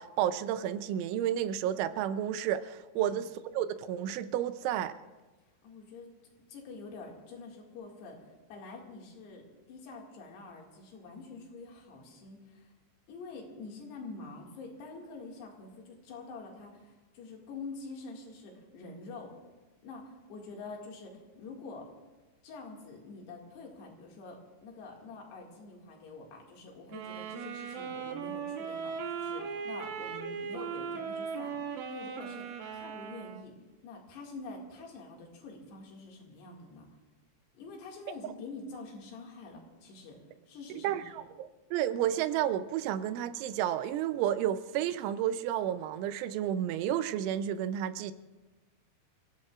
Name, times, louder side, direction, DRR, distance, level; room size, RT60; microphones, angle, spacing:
voice 1, 0.0-3.3 3.5-4.9 40.8-48.1, right 11 dB, 85° right, 12 dB, 3.1 m, -31 dB
voice 2, 5.6-6.1 6.5-12.7 13.1-19.3 19.8-21.9 22.4-33.5 33.8-36.9 37.6-40.2 40.5-41.0, left 3 dB, 65° left, -1 dB, 4.0 m, -46 dB
sound 1, 26.9-33.5, right 6 dB, 70° right, 2.4 m, -38 dB
29.0 x 16.5 x 2.5 m, 1.2 s
omnidirectional pair, 5.3 m